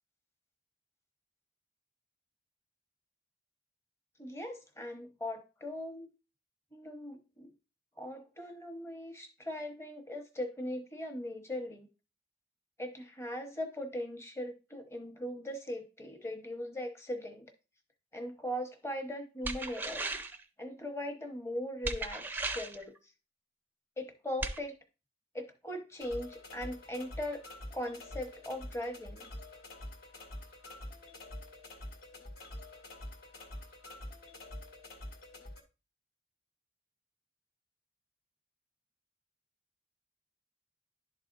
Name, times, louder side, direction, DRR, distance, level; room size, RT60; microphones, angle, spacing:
voice 1, 4.2-6.1 6.7-7.5 8.0-11.9 12.8-17.5 18.1-20.0 20.6-22.9 24.0-24.8 25.3-27.4 27.7-29.3, left 1 dB, 15° left, 5 dB, 0.9 m, -39 dB
sound 1, 19.4-20.4 21.8-22.8 24.4-24.6, right 2 dB, 10° right, 0.4 m, -36 dB
sound 2, 26.0-35.6, left 1 dB, 60° left, 1.3 m, -47 dB
11.0 x 4.1 x 2.5 m, 0.30 s
head